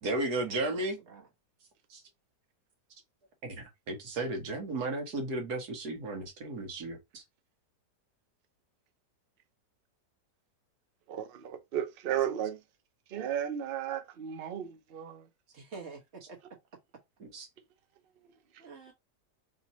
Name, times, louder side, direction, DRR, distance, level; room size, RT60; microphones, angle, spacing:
voice 1, 0.0-1.0 1.9-2.0 3.4-7.2 17.2-17.5, right 2 dB, 65° right, 1.6 m, -34 dB
voice 2, 11.1-12.6 13.1-15.3 18.5-18.7, right 10 dB, 85° right, 0.5 m, -34 dB
voice 3, 15.5-16.4 18.6-18.9, right 4 dB, 40° right, 1.6 m, -47 dB
3.6 x 2.6 x 4.1 m
omnidirectional pair, 1.9 m